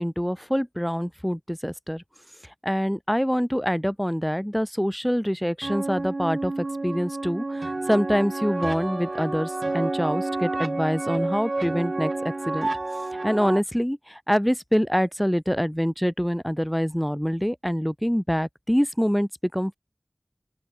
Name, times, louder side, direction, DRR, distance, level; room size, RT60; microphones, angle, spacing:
voice 1, 0.0-2.0 2.6-12.7 13.2-19.8, equal, 5° left, 0.7 m, -25 dB
sound 1, 5.6-13.6, right 2 dB, 70° right, 0.7 m, -30 dB
open air
wide cardioid pair, 55°, 0 cm